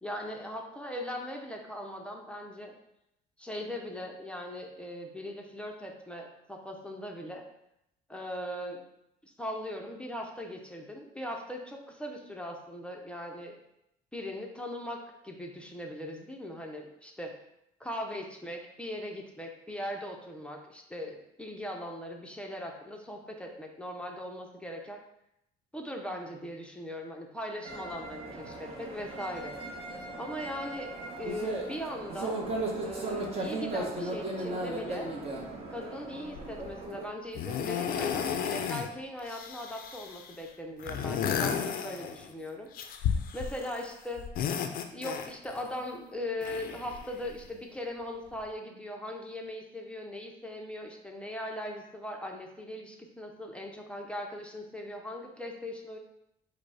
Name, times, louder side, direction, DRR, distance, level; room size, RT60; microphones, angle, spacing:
voice 1, 0.0-2.7 3.4-7.4 8.1-8.8 9.2-13.6 14.1-15.0 15.2-17.3 17.8-25.0 25.7-29.5 30.2-30.9 31.2-32.4 32.8-35.1 35.7-44.2 44.9-56.0, left 1 dB, 5° left, 1 dB, 0.6 m, -39 dB
sound 1, 27.6-37.1, right 2 dB, 35° right, 0.9 m, -36 dB
sound 2, 36.3-36.7 37.3-38.9 39.2-40.3 40.8-42.3 42.7-43.8 44.2-45.6 46.4-47.5 48.3-48.4, left 8 dB, 60° left, 0.4 m, -33 dB
4.9 x 2.1 x 4.7 m, 0.81 s
cardioid pair, 110°, 17 cm